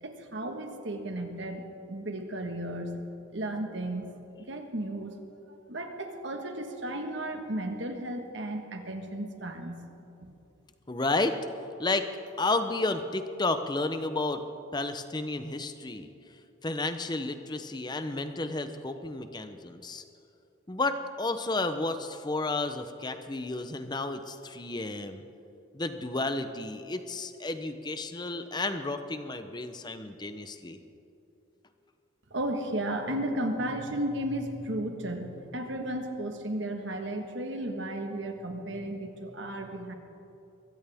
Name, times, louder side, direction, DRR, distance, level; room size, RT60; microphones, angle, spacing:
voice 1, 0.0-3.0 3.3-4.1 4.5-5.2 5.7-9.9 10.2-10.4 32.3-39.9, right 1 dB, 65° right, 5 dB, 1.5 m, -34 dB
voice 2, 10.9-11.3 11.8-12.1 12.4-14.4 14.7-16.1 16.6-20.0 20.7-25.2 25.7-30.8, left 2 dB, 20° left, 9 dB, 0.7 m, -32 dB
23.0 x 15.5 x 3.6 m, 2.8 s
head